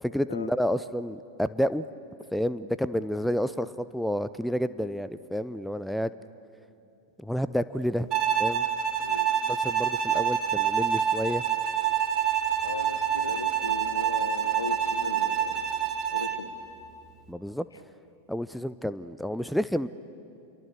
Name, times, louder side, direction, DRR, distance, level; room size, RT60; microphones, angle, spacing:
voice 1, 0.0-1.9 2.3-6.2 7.2-8.1 8.4-8.7 9.5-11.4 17.3-17.7 18.3-19.9, equal, ahead, 14 dB, 0.5 m, -29 dB
Bowed string instrument, 8.1-16.5, right 9 dB, 35° right, 1.8 m, -27 dB
voice 2, 12.6-15.6 16.1-16.5, left 4 dB, 75° left, 11 dB, 1.4 m, -37 dB
28.0 x 23.0 x 7.1 m, 2.6 s
figure-of-eight pair, 90°, 0 cm